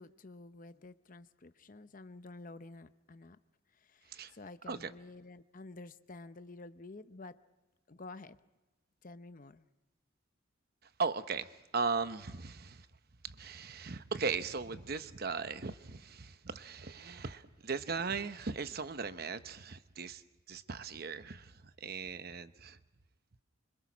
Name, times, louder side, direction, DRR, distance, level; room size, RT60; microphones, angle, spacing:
voice 1, 0.0-3.4 3.7-7.4 7.9-8.4 9.0-9.7, left 2 dB, 40° left, 12 dB, 0.8 m, -50 dB
voice 2, 11.0-12.9 13.2-20.2 20.5-22.8, right 4 dB, 50° right, 11 dB, 0.9 m, -38 dB
26.5 x 25.5 x 6.2 m, 1.1 s
head